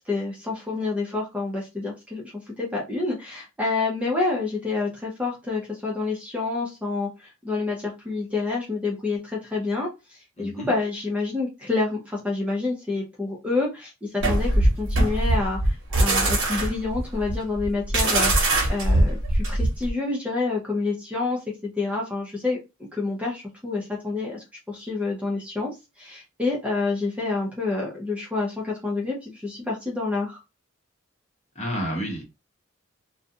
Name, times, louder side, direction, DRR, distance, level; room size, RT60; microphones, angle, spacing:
voice 1, 0.1-2.2 2.6-9.9 10.4-21.4 21.8-22.6 22.9-25.7 26.0-30.4, left 3 dB, 5° right, 0.6 m, -28 dB
voice 2, 10.4-10.7 31.5-32.2, equal, 35° left, 0.9 m, -30 dB
sound 1, 14.2-19.9, right 1 dB, 60° right, 1.0 m, -22 dB
2.4 x 2.2 x 2.7 m
head